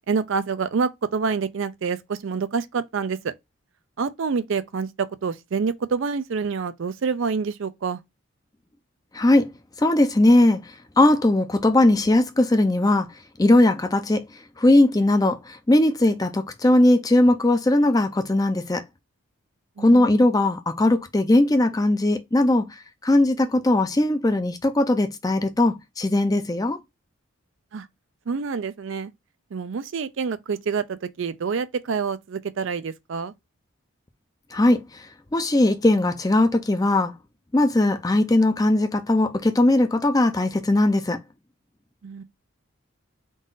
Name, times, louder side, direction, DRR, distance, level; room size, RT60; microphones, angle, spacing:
voice 1, 0.1-3.3 4.0-8.0 19.8-20.2 27.7-27.9 28.3-29.1 29.5-33.3 42.0-42.2, right 5 dB, 60° right, 0.4 m, -27 dB
voice 2, 9.1-9.5 9.8-10.6 11.0-13.1 13.4-14.2 14.6-18.8 19.8-22.7 23.0-26.8 34.5-34.8 35.3-37.1 37.5-41.2, left 1 dB, 15° left, 0.4 m, -19 dB
3.8 x 2.4 x 3.8 m
head